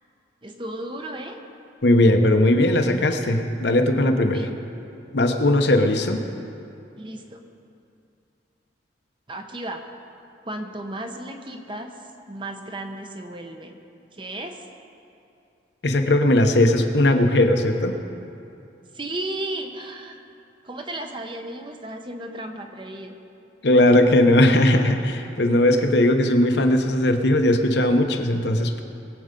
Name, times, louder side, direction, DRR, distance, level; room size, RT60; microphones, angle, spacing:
voice 1, 0.4-1.4 4.3-4.5 7.0-7.4 9.3-9.8 10.5-11.9 12.3-13.8 14.1-14.6 18.9-20.3 20.6-23.2, right 1 dB, 25° right, 5 dB, 0.9 m, -34 dB
voice 2, 1.8-4.5 5.1-6.2 15.8-18.0 23.6-28.8, left 1 dB, 60° left, 5 dB, 0.9 m, -18 dB
21.0 x 7.9 x 5.2 m, 2.6 s
head